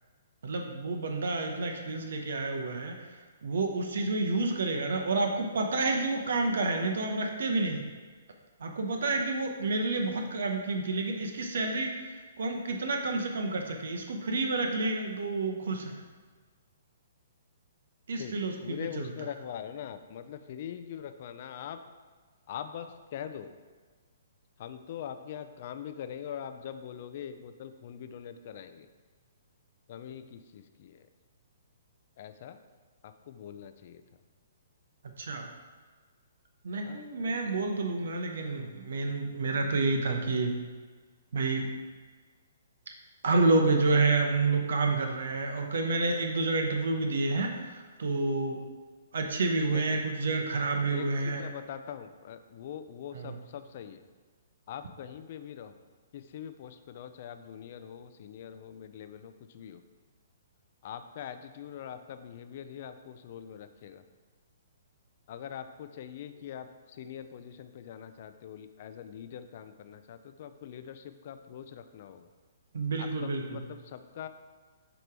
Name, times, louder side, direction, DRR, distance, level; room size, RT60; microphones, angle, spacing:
voice 1, 0.4-2.9 3.4-7.8 8.6-16.0 18.1-19.1 35.2-35.5 36.6-40.5 41.3-41.7 43.2-48.6 49.1-51.4 53.1-53.4 72.7-73.6, right 3 dB, 75° right, 3 dB, 0.8 m, -29 dB
voice 2, 18.6-21.8 22.5-23.5 24.6-28.9 29.9-31.0 32.2-32.6 33.0-34.0 36.8-37.6 49.7-50.0 50.9-54.0 54.7-55.8 56.1-59.8 60.8-64.0 65.3-72.3 73.0-74.3, left 9 dB, 50° left, 9 dB, 0.5 m, -43 dB
8.0 x 3.0 x 4.7 m, 1.5 s
hypercardioid pair, 145°, 0 cm